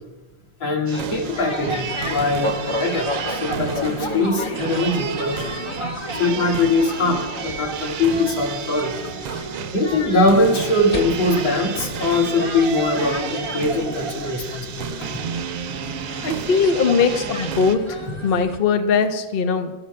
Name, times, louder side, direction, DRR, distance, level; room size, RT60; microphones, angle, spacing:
voice 1, 0.6-5.5 6.1-8.9 9.7-14.9 15.1-15.2, left 2 dB, 65° left, 0 dB, 2.6 m, -21 dB
sound 1, 0.9-18.6, equal, 25° left, 0.7 m, -32 dB
sound 2, 0.9-17.8, right 6 dB, 75° right, 1.6 m, -32 dB
voice 2, 16.2-19.7, left 5 dB, 80° left, 6 dB, 0.5 m, -20 dB
25.5 x 12.5 x 2.2 m, 1.2 s
omnidirectional pair, 2.3 m